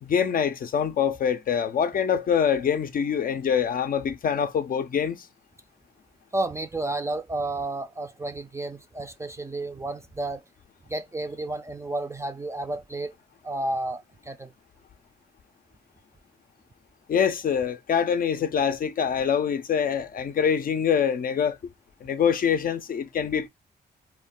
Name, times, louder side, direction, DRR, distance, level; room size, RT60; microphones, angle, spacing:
voice 1, 0.0-5.3 17.1-21.6 22.0-23.5, left 7 dB, 55° left, 0.4 m, -25 dB
voice 2, 6.3-10.4 10.9-13.1 13.4-14.5, right 2 dB, 15° right, 0.4 m, -31 dB
2.1 x 2.1 x 3.6 m
supercardioid pair, 55°, 18 cm